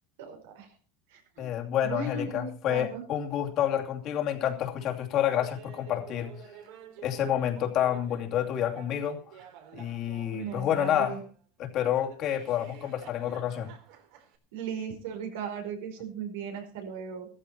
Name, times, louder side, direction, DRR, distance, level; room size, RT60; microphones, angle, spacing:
voice 1, 0.2-0.7 1.1-1.5 1.8-3.0 10.3-11.2 14.5-17.3, right 5 dB, 90° right, 4 dB, 5.1 m, -37 dB
voice 2, 1.4-6.3 7.0-9.2 9.7-11.2 11.6-13.7, left 10 dB, 50° left, 2 dB, 2.7 m, -29 dB
Laughter, 5.4-11.3 11.8-14.4, right 9 dB, 70° right, 3.9 m, -50 dB
15.0 x 13.5 x 4.3 m, 0.37 s
supercardioid pair, 125°, 0 cm